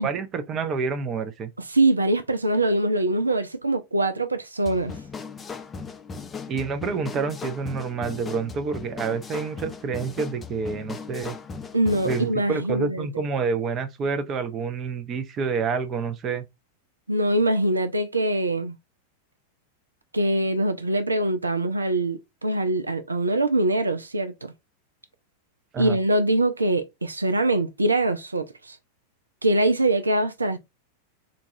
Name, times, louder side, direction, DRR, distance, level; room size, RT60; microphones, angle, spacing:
voice 1, 0.0-1.5 6.5-11.4 12.0-16.5 25.7-26.0, right 5 dB, 30° right, 0.5 m, -28 dB
voice 2, 1.6-4.9 11.7-13.1 17.1-18.8 20.1-24.5 25.8-28.8 29.4-30.6, right 1 dB, 80° right, 0.4 m, -23 dB
sound 1, 4.7-12.3, left 5 dB, 20° left, 0.5 m, -38 dB
3.9 x 2.3 x 2.6 m
figure-of-eight pair, 90°, 0 cm